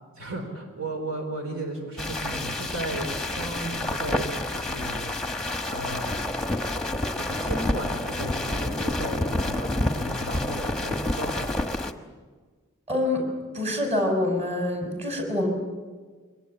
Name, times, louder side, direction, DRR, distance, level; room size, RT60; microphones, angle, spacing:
voice 1, 0.2-5.1 5.7-6.1 7.1-11.5, right 1 dB, 70° right, 3 dB, 4.1 m, -35 dB
sound 1, 2.0-11.9, left 1 dB, 5° left, 1.2 m, -29 dB
voice 2, 12.9-13.3 13.5-15.5, left 1 dB, 30° right, 3 dB, 5.4 m, -26 dB
24.0 x 19.5 x 8.8 m, 1.5 s
head